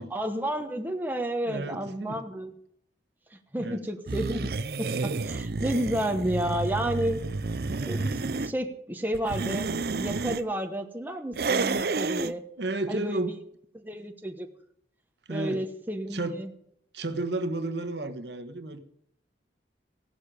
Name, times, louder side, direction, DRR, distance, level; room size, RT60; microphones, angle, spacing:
voice 1, 0.1-2.5 3.3-7.2 7.7-12.4 12.9-13.4 13.8-14.5 15.3-16.5, right 1 dB, 10° right, 4 dB, 1.1 m, -31 dB
voice 2, 1.4-2.2 3.6-3.8 12.6-13.3 15.3-15.6 16.1-16.4 16.9-18.8, right 2 dB, 80° right, 7 dB, 1.3 m, -32 dB
sound 1, 4.1-8.5 9.1-10.4 11.3-12.3, right 3 dB, 60° right, 0.6 m, -30 dB
16.0 x 11.5 x 5.1 m, 0.71 s
head